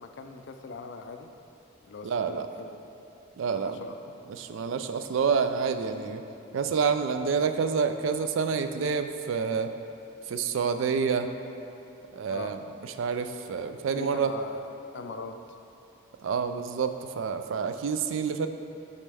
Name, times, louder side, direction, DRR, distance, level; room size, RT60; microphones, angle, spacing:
voice 1, 0.0-1.3 1.9-2.9 3.5-4.1 12.3-12.5 14.0-15.3, left 4 dB, 55° left, 6 dB, 0.4 m, -41 dB
voice 2, 2.0-2.5 3.4-3.8 4.4-6.2 6.5-9.7 10.3-11.3 12.1-12.6 13.0-14.3 16.2-18.5, right 6 dB, 70° right, 8 dB, 0.3 m, -28 dB
8.8 x 4.2 x 3.4 m, 2.8 s
head